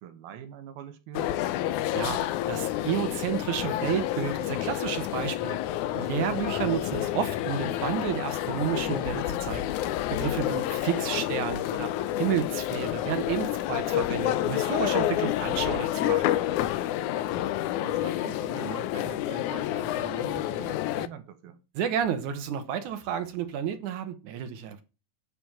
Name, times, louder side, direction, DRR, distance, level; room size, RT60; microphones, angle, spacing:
voice 1, 0.0-1.4 10.3-10.6 16.9-17.5 17.8-21.6, right 10 dB, 85° right, 3.1 m, -44 dB
sound 1, 1.1-21.1, left 13 dB, 80° left, 1.8 m, -29 dB
voice 2, 2.5-5.6 5.9-9.7 10.1-11.9 12.2-16.3 21.8-24.8, right 8 dB, 65° right, 2.2 m, -31 dB
10.5 x 5.1 x 7.4 m
omnidirectional pair, 4.1 m